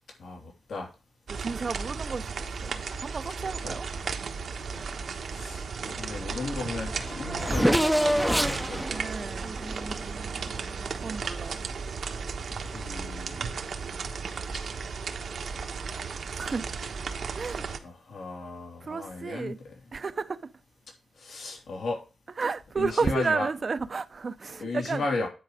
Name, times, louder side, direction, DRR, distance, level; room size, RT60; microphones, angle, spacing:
voice 1, 0.2-0.9 3.6-3.8 4.7-4.8 5.3-8.8 11.5-11.7 12.5-13.7 17.8-19.7 21.2-22.0 22.8-23.5 24.6-25.3, left 3 dB, 80° left, 3.0 m, -35 dB
voice 2, 1.3-3.9 8.9-9.6 11.0-11.6 16.4-16.7 17.3-17.6 18.9-19.6 19.9-20.4 22.4-25.0, right 4 dB, 45° right, 0.6 m, -32 dB
sound 1, 1.3-17.8, right 5 dB, 75° right, 1.2 m, -35 dB
Race car auto racing / Accelerating revving vroom, 6.3-6.4 6.6-10.6, equal, 5° right, 0.6 m, -27 dB
10.0 x 4.8 x 4.9 m
wide cardioid pair, 110°, 0 cm